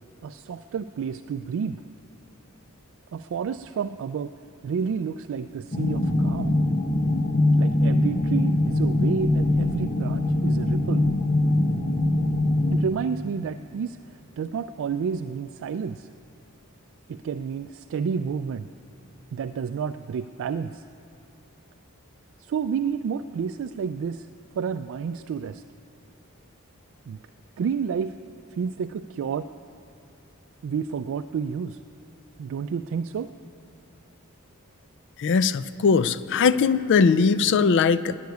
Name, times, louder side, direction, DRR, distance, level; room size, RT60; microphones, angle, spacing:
voice 1, 0.2-1.8 3.1-4.3 4.6-6.6 7.6-11.0 12.7-16.1 17.1-18.7 19.3-20.8 22.4-24.3 24.6-25.6 27.1-27.2 27.6-28.2 28.5-29.5 30.6-31.8 32.4-33.3, right 6 dB, 60° right, 10 dB, 0.3 m, -30 dB
sound 1, 5.7-12.8, left 1 dB, 40° left, 0.9 m, -22 dB
voice 2, 35.2-38.2, left 5 dB, 55° left, 15 dB, 0.4 m, -20 dB
11.5 x 9.5 x 9.2 m, 2.6 s
head